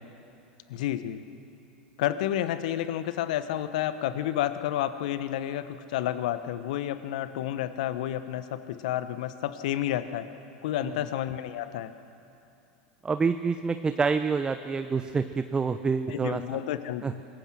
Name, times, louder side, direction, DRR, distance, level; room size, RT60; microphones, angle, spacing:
voice 1, 0.7-1.2 2.0-10.3 10.6-11.9 16.1-17.2, left 12 dB, 65° left, 12 dB, 1.2 m, -30 dB
voice 2, 13.0-16.4 17.0-17.1, right 5 dB, 20° right, 10 dB, 0.8 m, -27 dB
26.0 x 21.0 x 6.3 m, 2.7 s
hypercardioid pair, 85°, 4 cm